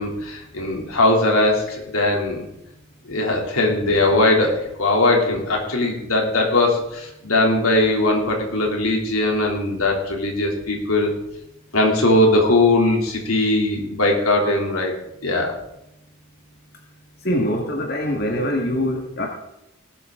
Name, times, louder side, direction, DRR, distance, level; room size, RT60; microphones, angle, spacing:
voice 1, 0.0-2.4 3.1-11.1 11.7-14.9 15.2-15.6, left 2 dB, 85° left, 0 dB, 3.1 m, -20 dB
voice 2, 17.2-19.3, equal, 50° left, 0 dB, 1.9 m, -23 dB
19.0 x 8.5 x 3.8 m, 0.83 s
head